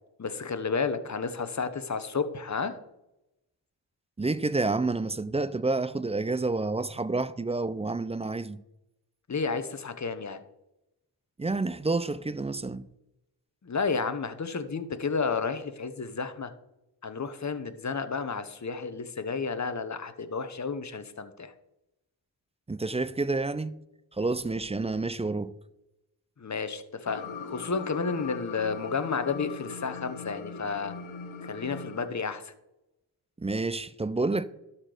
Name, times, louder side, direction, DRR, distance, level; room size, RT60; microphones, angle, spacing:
voice 1, 0.2-2.7 9.3-10.4 13.6-16.5 17.0-21.5 26.4-30.9 31.4-32.5, left 5 dB, 35° left, 1.0 m, -31 dB
voice 2, 4.2-8.6 11.4-12.8 22.7-23.8 24.2-25.5 33.4-34.4, right 3 dB, 15° right, 0.4 m, -29 dB
sound 1, 27.1-32.1, left 5 dB, 80° left, 1.2 m, -40 dB
12.5 x 4.4 x 5.0 m
cardioid pair, 55°, 47 cm